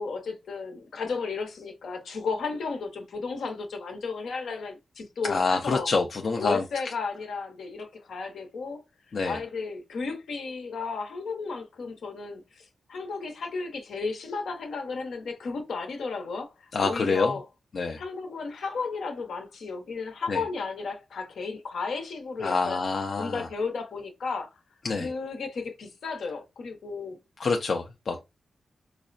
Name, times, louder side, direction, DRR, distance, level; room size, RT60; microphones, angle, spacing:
voice 1, 0.0-5.9 6.4-8.8 9.2-17.4 18.0-22.8 23.2-24.5 24.9-27.2, left 4 dB, 80° left, 0.9 m, -34 dB
voice 2, 5.3-6.6 9.1-9.4 16.7-17.3 17.7-18.0 20.3-20.4 22.4-23.5 24.8-25.1 27.4-28.2, left 4 dB, 45° left, 0.4 m, -26 dB
4.8 x 2.1 x 2.5 m
wide cardioid pair, 170°, 0 cm